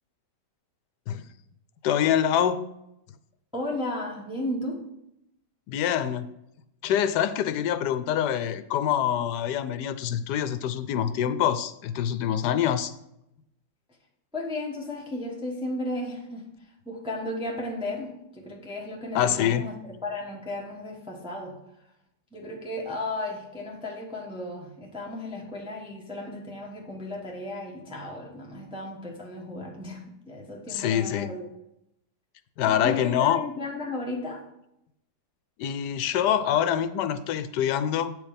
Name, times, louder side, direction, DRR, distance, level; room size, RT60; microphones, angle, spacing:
voice 1, 1.8-2.6 5.7-6.3 6.8-12.9 19.1-19.7 30.7-31.4 32.6-33.4 35.6-38.2, left 10 dB, 80° left, 13 dB, 1.2 m, -25 dB
voice 2, 3.5-4.9 14.3-16.5 16.8-21.6 22.3-31.5 32.7-34.5, left 1 dB, 5° right, -1 dB, 1.0 m, -34 dB
8.5 x 4.8 x 5.1 m, 0.82 s
omnidirectional pair, 1.8 m